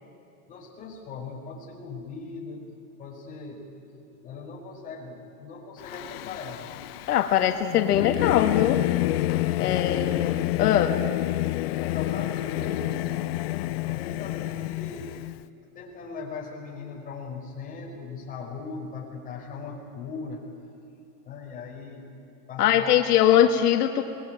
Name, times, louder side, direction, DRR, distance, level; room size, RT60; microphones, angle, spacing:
voice 1, 0.5-2.6 3.0-6.7 9.6-10.0 10.9-11.0 11.8-13.4 13.8-15.2 15.7-20.4 21.2-22.0 22.5-23.0, left 4 dB, 20° left, -2 dB, 4.9 m, -39 dB
Singing / Musical instrument, 5.8-15.4, left 16 dB, 45° left, 0.6 m, -28 dB
voice 2, 7.1-8.8 9.6-11.0 22.6-24.0, left 10 dB, 80° left, 6 dB, 1.7 m, -22 dB
25.5 x 20.0 x 9.1 m, 2.9 s
supercardioid pair, 160°, 45 cm